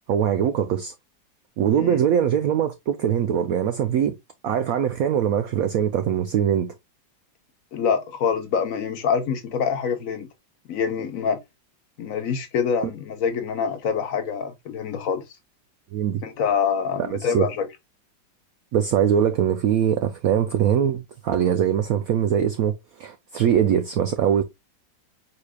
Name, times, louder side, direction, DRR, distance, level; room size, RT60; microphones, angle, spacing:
voice 1, 0.1-0.9 1.6-4.1 4.4-6.7 15.9-16.2 17.1-17.5 18.7-24.4, right 9 dB, 75° right, 0.8 m, -22 dB
voice 2, 7.7-10.3 10.7-11.4 12.0-15.2 16.2-17.7, left 6 dB, 65° left, 0.9 m, -25 dB
4.8 x 4.1 x 2.2 m
omnidirectional pair, 2.0 m